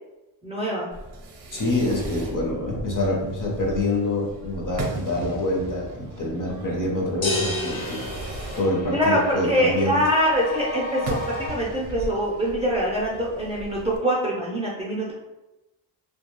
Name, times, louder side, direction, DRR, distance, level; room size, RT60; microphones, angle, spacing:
voice 1, 0.4-0.9 8.9-15.1, equal, 15° right, -5 dB, 0.5 m, -24 dB
Fireworks, 0.9-14.0, right 2 dB, 60° right, 0.6 m, -38 dB
voice 2, 1.5-8.0 8.6-10.0, left 1 dB, 45° left, -1 dB, 0.7 m, -26 dB
sound 1, 6.1-11.5, left 3 dB, 85° left, 1.0 m, -37 dB
sound 2, 7.2-9.3, left 2 dB, 65° left, 1.0 m, -30 dB
2.3 x 2.2 x 2.9 m, 1.0 s
cardioid pair, 100°, 46 cm